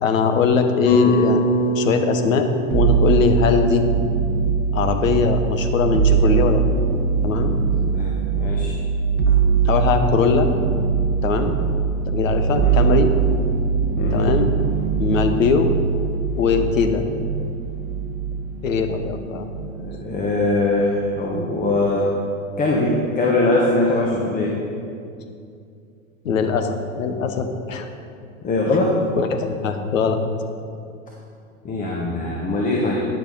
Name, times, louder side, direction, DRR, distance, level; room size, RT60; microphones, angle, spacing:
voice 1, 0.0-1.4 1.8-3.8 4.7-6.6 7.2-7.5 9.6-10.5 11.2-11.5 12.1-13.1 14.1-14.5 15.0-15.7 16.4-17.0 18.6-19.4 26.2-27.9 29.2-30.2, left 5 dB, 70° left, 7 dB, 0.9 m, -20 dB
sound 1, 0.9-5.1, equal, 40° left, 1.9 m, -25 dB
sound 2, 2.7-20.1 20.5-21.2, right 6 dB, 50° right, 0.8 m, -22 dB
voice 2, 7.8-8.7 9.3-9.4 12.6-12.8 14.0-14.2 19.8-22.1 22.6-24.5 28.4-29.0 31.6-33.1, left 2 dB, 20° left, -2 dB, 1.1 m, -22 dB
10.0 x 6.5 x 4.0 m, 2.4 s
figure-of-eight pair, 95°, 41 cm